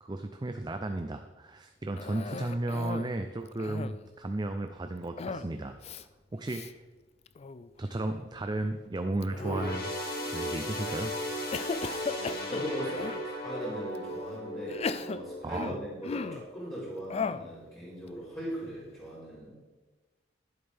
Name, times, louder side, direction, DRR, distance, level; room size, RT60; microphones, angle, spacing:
voice 1, 0.0-5.8 6.3-6.7 7.8-9.9 10.3-11.1 15.4-15.8, right 2 dB, 25° right, 6 dB, 0.5 m, -34 dB
Cough, 2.0-3.2 3.5-4.1 5.2-5.5 5.8-6.0 6.5-6.7 7.3-7.7 9.2-10.0 10.6-11.0 11.5-13.3 13.9-14.0 14.7-16.5 17.1-17.5, left 4 dB, 35° left, 0.3 m, -37 dB
sound 1, 9.3-17.0 17.4-17.6 18.5-18.6, equal, 55° left, 2.2 m, -37 dB
voice 2, 12.0-19.6, equal, 15° left, -11 dB, 4.0 m, -40 dB
12.0 x 11.0 x 3.5 m, 1.2 s
head